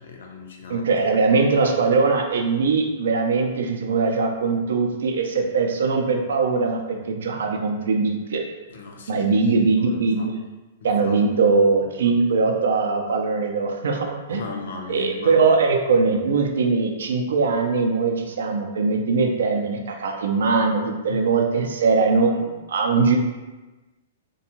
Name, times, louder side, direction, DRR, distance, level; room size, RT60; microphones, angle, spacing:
voice 1, 0.0-0.9 8.7-9.3 9.7-10.3 10.8-11.2 14.3-15.5 21.1-21.3, left 5 dB, 75° left, 1 dB, 0.5 m, -37 dB
voice 2, 0.7-8.4 9.1-10.4 10.8-14.6 14.9-23.2, right 4 dB, 80° right, 3 dB, 0.4 m, -21 dB
2.5 x 2.2 x 2.8 m, 1.1 s
hypercardioid pair, 150°, 0 cm